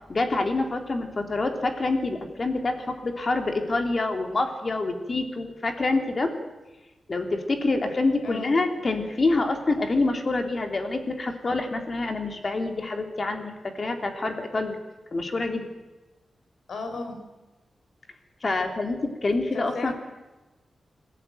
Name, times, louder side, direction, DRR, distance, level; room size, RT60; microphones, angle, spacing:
voice 1, 0.1-6.3 7.1-14.8 15.1-15.7 18.4-19.9, left 3 dB, 35° left, 5 dB, 3.3 m, -26 dB
voice 2, 8.2-8.6 16.7-17.2 19.5-19.9, left 3 dB, 80° left, 6 dB, 5.2 m, -34 dB
26.5 x 17.5 x 9.2 m, 1.1 s
wide cardioid pair, 130°, 0 cm